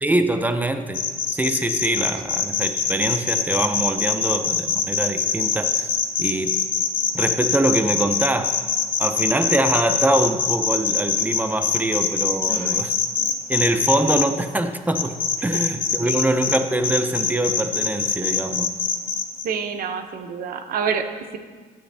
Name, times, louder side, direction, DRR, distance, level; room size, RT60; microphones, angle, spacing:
voice 1, 0.0-5.9 6.2-6.6 7.1-8.6 9.0-12.9 13.5-18.7, right 1 dB, 10° right, 8 dB, 0.5 m, -23 dB
sound 1, 0.9-14.2 15.0-16.6 16.8-19.4, left 7 dB, 55° left, 0.8 m, -23 dB
voice 2, 12.5-12.8 13.2-13.3 15.5-15.6 16.0-16.1 19.4-21.4, right 6 dB, 60° right, 7 dB, 0.7 m, -28 dB
10.0 x 7.6 x 3.4 m, 1.5 s
cardioid pair, 110°, 17 cm